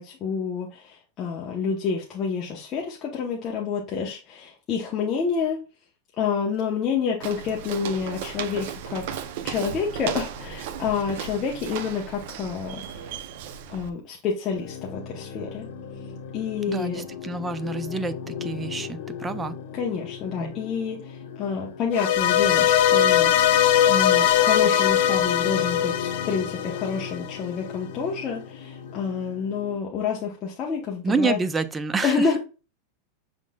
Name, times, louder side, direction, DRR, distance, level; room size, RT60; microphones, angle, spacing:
voice 1, 0.0-5.6 6.2-13.1 13.7-15.7 16.3-17.0 19.7-23.6 23.9-31.4 32.0-32.4, left 6 dB, 25° left, 0.8 m, -28 dB
Walk footsteps, 7.2-13.9, right 8 dB, 55° right, 0.6 m, -35 dB
sound 1, 14.5-29.8, left 7 dB, 70° left, 1.0 m, -37 dB
voice 2, 16.7-19.6 20.4-20.5 31.0-32.2, right 4 dB, 10° right, 0.4 m, -28 dB
sound 2, 21.9-27.2, left 10 dB, 55° left, 0.6 m, -20 dB
6.1 x 3.7 x 2.3 m
supercardioid pair, 170°, 0 cm